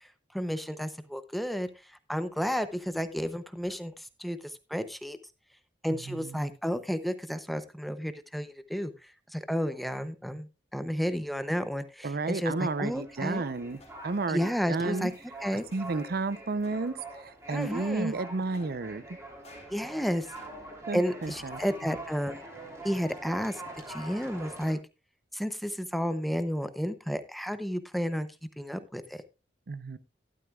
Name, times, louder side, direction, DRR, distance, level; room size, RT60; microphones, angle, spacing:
voice 1, 0.3-1.7 2.1-4.4 4.7-5.2 5.8-8.9 9.3-13.4 14.3-15.1 15.4-15.6 17.5-18.1 19.7-20.3 20.9-22.4 22.8-23.6 23.9-24.8 25.3-28.3 28.6-29.2, equal, ahead, 0.6 m, -32 dB
voice 2, 5.9-6.4 12.0-15.1 15.7-19.0 20.9-21.6 29.7-30.0, right 3 dB, 55° right, 0.6 m, -32 dB
sound 1, 12.5-24.7, right 2 dB, 15° right, 3.0 m, -45 dB
sound 2, 13.5-21.7, left 2 dB, 35° left, 2.6 m, -57 dB
12.5 x 12.0 x 2.3 m
head